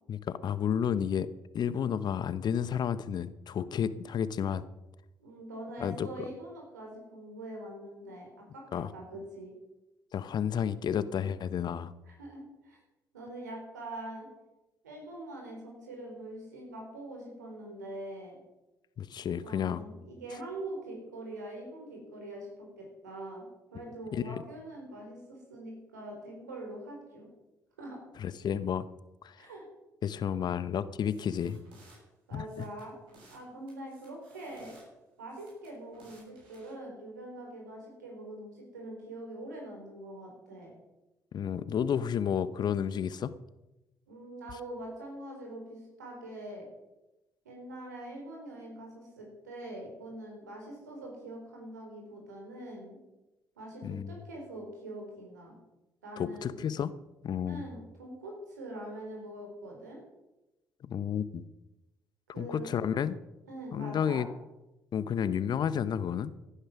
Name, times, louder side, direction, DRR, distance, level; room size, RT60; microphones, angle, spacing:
voice 1, 0.1-1.3 1.5-4.6 5.8-6.1 8.7-8.9 10.1-11.9 19.0-19.8 24.1-24.4 28.2-28.8 29.2-29.4 30.0-31.6 32.3-32.7 41.3-43.3 53.8-54.2 56.2-56.9 57.2-57.6 60.8-61.4 62.4-63.2 63.7-64.3 64.9-66.3, left 8 dB, 50° left, 15 dB, 0.9 m, -31 dB
voice 2, 5.2-9.5 12.1-12.8 13.1-14.3 14.8-18.3 19.4-23.4 23.7-27.3 27.8-28.0 29.4-29.6 32.3-32.9 33.3-34.8 35.2-40.7 44.1-46.6 47.4-53.0 53.6-55.5 56.0-56.6 57.4-60.0 62.3-62.7 63.5-64.2, right 1 dB, 85° right, 0 dB, 4.3 m, -43 dB
sound 1, 31.0-32.0 32.4-33.4 33.7-34.8 35.3-36.7, right 2 dB, 70° right, 6.9 m, -58 dB
17.0 x 10.0 x 6.0 m, 0.99 s
hypercardioid pair, 45°, 9 cm